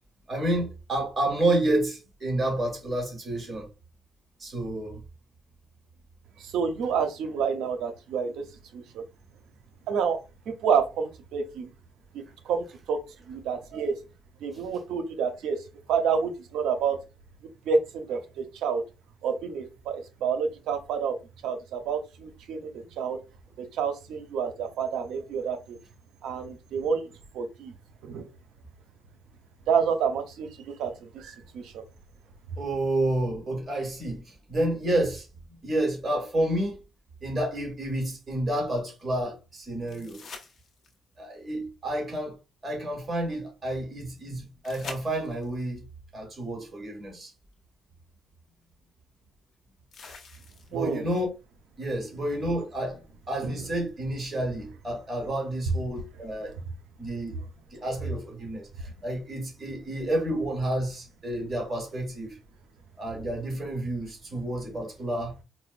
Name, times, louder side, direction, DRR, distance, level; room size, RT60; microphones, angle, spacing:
voice 1, 0.3-3.7 4.4-5.0 32.6-34.2 34.5-35.3 35.6-36.8 37.2-40.2 41.2-42.4 42.6-45.8 46.1-47.3 50.7-51.3 51.8-56.5 57.0-57.4 57.7-62.4 63.0-65.3, right 1 dB, 35° right, 1.7 m, -30 dB
voice 2, 6.4-8.4 8.7-9.0 9.9-10.2 10.5-11.7 12.1-13.0 13.3-14.0 14.4-15.6 15.9-17.0 17.7-18.8 19.2-21.1 21.4-23.2 23.6-25.8 26.2-27.7 28.0-28.3 29.7-31.8 50.7-51.1 53.4-53.6, right 6 dB, 85° right, 0.6 m, -29 dB
sound 1, 39.9-41.2 44.6-45.6 47.5-47.6 49.9-50.9 53.9-54.0, left 5 dB, 60° left, 0.7 m, -45 dB
4.3 x 2.1 x 2.4 m
cardioid pair, 90°, 0 cm